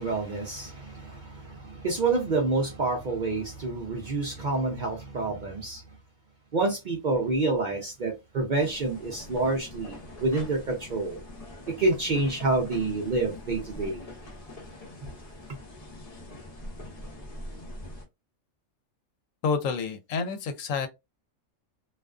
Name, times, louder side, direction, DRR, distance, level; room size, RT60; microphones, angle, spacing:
voice 1, 0.0-5.8 6.5-11.2 11.7-14.1, right 3 dB, 60° right, 0.5 m, -28 dB
sound 1, 8.6-18.1, left 1 dB, 40° left, 0.6 m, -43 dB
voice 2, 19.4-20.9, left 5 dB, 80° left, 0.9 m, -28 dB
2.4 x 2.3 x 2.3 m
omnidirectional pair, 1.4 m